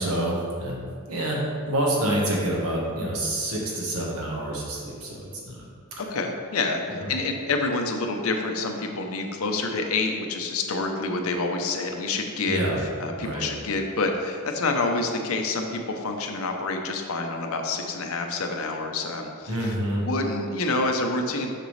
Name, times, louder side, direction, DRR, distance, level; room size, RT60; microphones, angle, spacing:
voice 1, 0.0-1.4 1.6-5.6 5.9-6.0 6.9-7.1 12.5-12.8 13.2-13.5 19.5-20.0, right 1 dB, 85° right, -3 dB, 1.4 m, -27 dB
voice 2, 6.1-12.6 13.0-21.5, left 3 dB, 80° left, 3 dB, 0.7 m, -27 dB
6.6 x 6.1 x 3.2 m, 2.1 s
head